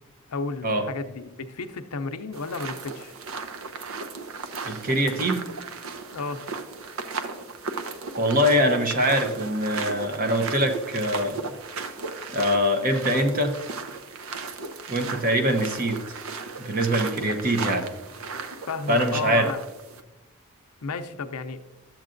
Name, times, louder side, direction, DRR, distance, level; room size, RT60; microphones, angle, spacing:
voice 1, 0.3-3.1 6.1-6.4 18.7-19.7 20.8-21.6, left 4 dB, 85° left, 9 dB, 0.6 m, -33 dB
sound 1, 2.3-20.0, right 4 dB, 65° right, 0.6 m, -36 dB
voice 2, 4.6-5.4 8.2-11.5 12.3-13.5 14.9-16.0 16.6-17.9 18.9-19.5, equal, 40° right, 5 dB, 0.9 m, -23 dB
12.0 x 7.6 x 2.5 m, 1.0 s
head